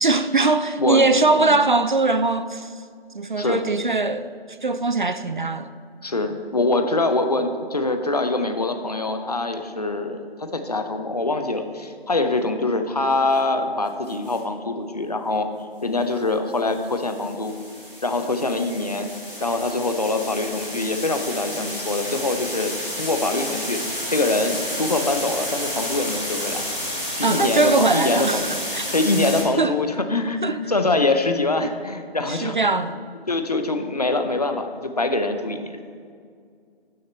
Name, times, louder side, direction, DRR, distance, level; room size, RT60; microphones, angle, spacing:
voice 1, 0.0-2.7 3.1-4.3 4.6-5.7 27.2-28.9 29.6-29.8 30.4-30.6 31.6-31.7 32.3-33.0, right 3 dB, 50° right, 0.4 m, -21 dB
voice 2, 6.0-15.5 15.8-17.5 18.0-19.1 19.4-23.8 24.1-26.7 27.2-28.6 28.9-32.6 33.3-35.8, left 2 dB, 40° left, 0.7 m, -24 dB
sound 1, 14.1-14.4 16.5-29.4, equal, 5° right, 0.8 m, -31 dB
12.5 x 6.5 x 4.3 m
figure-of-eight pair, 165°, 31 cm